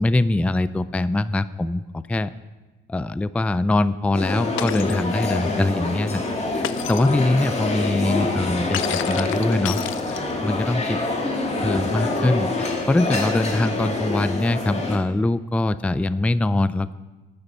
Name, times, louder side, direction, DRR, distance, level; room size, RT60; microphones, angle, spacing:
voice 1, 0.0-2.3 2.9-6.2 6.5-9.8 10.1-11.0 11.6-16.9, left 2 dB, 5° left, 15 dB, 0.3 m, -23 dB
sound 1, 4.1-15.0, left 2 dB, 35° left, 2.0 m, -26 dB
Shatter, 4.6-5.0 6.6-7.1 8.7-10.5, left 14 dB, 80° left, 0.4 m, -31 dB
13.5 x 9.9 x 4.1 m, 1.2 s
cardioid pair, 90°, 20 cm